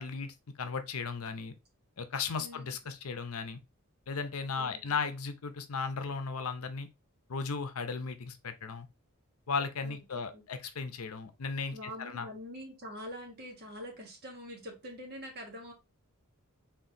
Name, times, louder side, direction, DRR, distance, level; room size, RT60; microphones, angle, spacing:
voice 1, 0.0-1.5 2.0-3.6 4.1-6.9 7.3-8.9 9.5-12.3, left 5 dB, 75° left, 0.6 m, -36 dB
voice 2, 4.6-5.0 9.8-10.4 11.7-15.7, equal, 45° right, 1.5 m, -45 dB
4.5 x 3.6 x 2.6 m
head